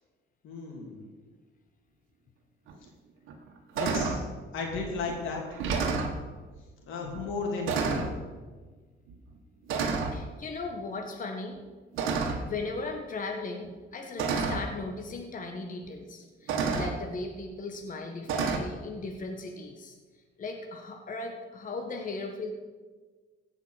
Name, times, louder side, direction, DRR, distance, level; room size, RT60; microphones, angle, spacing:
voice 1, 0.4-1.0 3.8-4.2 4.5-5.5 6.9-8.1, left 4 dB, 85° left, 0 dB, 3.0 m, -34 dB
sound 1, 2.7-2.8 3.3-3.5 3.8-4.2 5.1-5.2 5.5-6.2 7.1-7.3 7.7-8.2 9.1-9.3 9.7-10.2 11.9-12.6 13.6-13.7 14.2-14.7 15.8-15.9 16.5-17.0 18.3-18.6, right 5 dB, 90° right, 1.5 m, -29 dB
voice 2, 10.1-11.7 12.2-19.9 20.4-22.5, left 3 dB, 40° left, 3 dB, 1.4 m, -37 dB
16.0 x 5.7 x 6.5 m, 1.4 s
cardioid pair, 90°, 20 cm